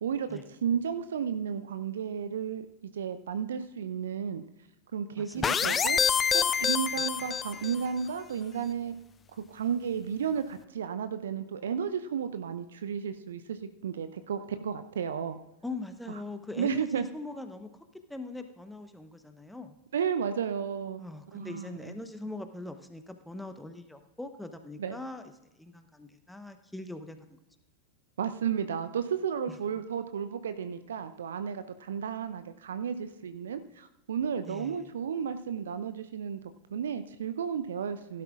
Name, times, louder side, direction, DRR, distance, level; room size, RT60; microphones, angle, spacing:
voice 1, 0.0-2.7 3.0-4.4 4.9-6.0 6.3-8.9 9.5-13.6 13.8-15.4 16.6-17.0 19.9-21.0 21.3-21.9 24.8-25.0 28.2-36.4 36.7-38.2, right 7 dB, 65° right, 11 dB, 0.6 m, -33 dB
voice 2, 5.2-5.8 7.2-7.3 15.6-19.7 21.0-27.4 29.5-29.6 34.4-34.9, left 2 dB, 5° left, 8 dB, 1.0 m, -42 dB
sound 1, 5.4-7.9, left 7 dB, 20° left, 0.3 m, -27 dB
16.0 x 12.0 x 2.4 m, 0.96 s
figure-of-eight pair, 90°, 0 cm